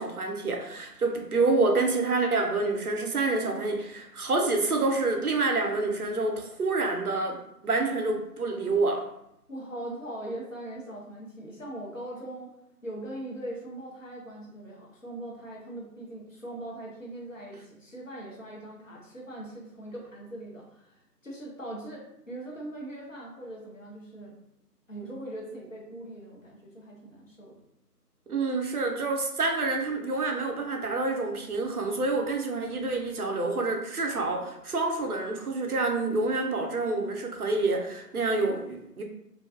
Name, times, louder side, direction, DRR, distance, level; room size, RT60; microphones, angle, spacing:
voice 1, 0.0-9.1 28.3-39.0, right 3 dB, 65° right, 3 dB, 0.5 m, -27 dB
voice 2, 9.5-12.5 12.8-21.0 21.2-24.3 24.9-27.6, right 1 dB, 50° left, -3 dB, 0.8 m, -40 dB
2.4 x 2.3 x 2.3 m, 0.79 s
figure-of-eight pair, 170°, 49 cm